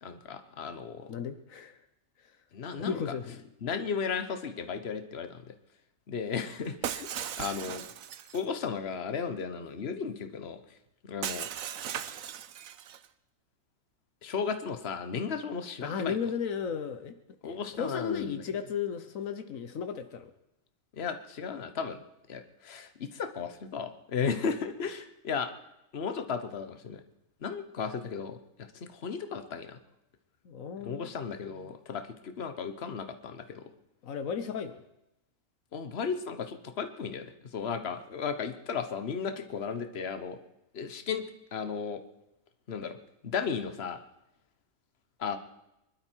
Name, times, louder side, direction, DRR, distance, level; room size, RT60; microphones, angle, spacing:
voice 1, 0.0-1.1 2.5-3.0 3.6-5.4 6.1-7.8 8.3-10.6 11.0-11.5 14.2-16.2 17.4-18.4 20.9-22.0 22.3-25.5 25.9-27.0 27.4-28.4 28.7-29.8 30.8-33.6 35.7-40.4 40.7-41.2 41.5-42.0 42.7-43.0 43.2-44.0 45.2-45.4, left 6 dB, 50° left, 8 dB, 1.4 m, -35 dB
voice 2, 1.1-1.8 2.2-2.4 2.8-3.4 15.8-17.2 17.4-20.3 30.4-31.1 31.6-31.7 34.0-34.8, left 7 dB, 80° left, 9 dB, 1.3 m, -35 dB
Shatter, 6.8-8.5 11.2-13.1, right 10 dB, 85° right, 1.2 m, -37 dB
23.5 x 12.0 x 4.6 m, 0.87 s
omnidirectional pair, 1.4 m